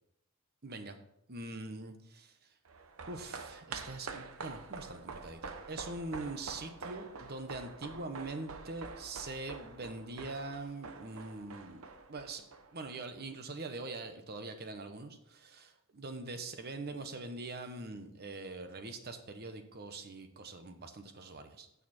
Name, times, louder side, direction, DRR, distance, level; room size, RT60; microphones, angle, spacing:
voice 1, 0.6-1.0 1.3-2.3 3.1-11.8 12.1-12.4 12.7-21.7, right 2 dB, 50° right, 8 dB, 1.0 m, -43 dB
sound 1, 2.6-13.2 13.5-13.6, right 4 dB, 75° right, 0.8 m, -47 dB
9.1 x 6.8 x 4.3 m, 0.78 s
head